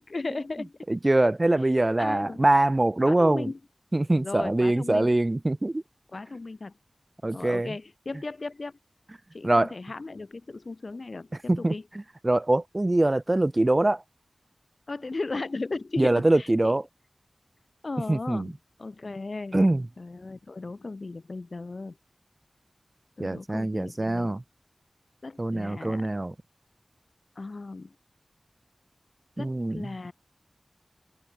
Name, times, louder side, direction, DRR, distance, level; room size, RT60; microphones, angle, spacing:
voice 1, 0.0-0.7 2.0-2.5 3.0-3.6 4.2-5.1 6.1-6.7 7.3-8.7 9.3-11.9 14.9-16.8 17.8-18.5 18.8-19.6 20.0-22.0 23.2-24.4 25.2-26.1 27.4-27.9 29.4-30.1, left 3 dB, 60° left, 7.6 m, -36 dB
voice 2, 0.9-3.5 3.9-5.8 7.2-7.7 9.4-9.7 11.5-11.7 12.2-14.0 16.0-16.8 18.1-18.5 19.5-19.8 23.2-24.4 25.4-26.3 29.4-29.9, right 2 dB, 35° right, 2.4 m, -23 dB
wide cardioid pair, 55°, 0 cm